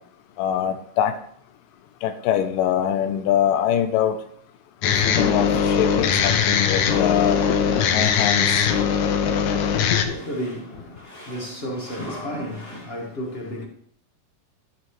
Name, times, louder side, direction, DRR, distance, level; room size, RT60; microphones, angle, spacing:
voice 1, 0.4-1.1 2.0-4.2 4.8-7.4 7.9-8.7 9.9-10.0, left 10 dB, 85° left, 2.4 m, -23 dB
sound 1, 4.8-10.1, left 7 dB, 70° left, 2.2 m, -20 dB
voice 2, 9.1-13.7, equal, 50° left, 0.6 m, -33 dB
13.0 x 7.6 x 3.1 m
omnidirectional pair, 3.8 m